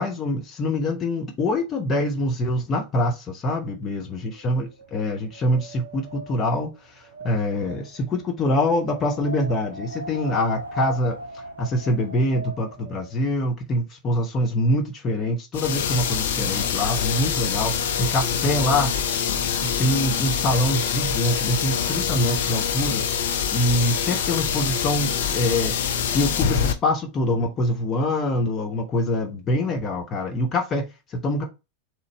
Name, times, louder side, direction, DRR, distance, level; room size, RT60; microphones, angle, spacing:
voice 1, 0.0-18.9 19.6-23.0 23.5-31.4, left 1 dB, 25° left, 0.8 m, -25 dB
Wind, 4.0-13.2, right 1 dB, 75° right, 0.5 m, -39 dB
sound 1, 15.5-26.7, left 8 dB, 60° left, 0.5 m, -25 dB
4.0 x 3.1 x 3.2 m
figure-of-eight pair, 90°, 0 cm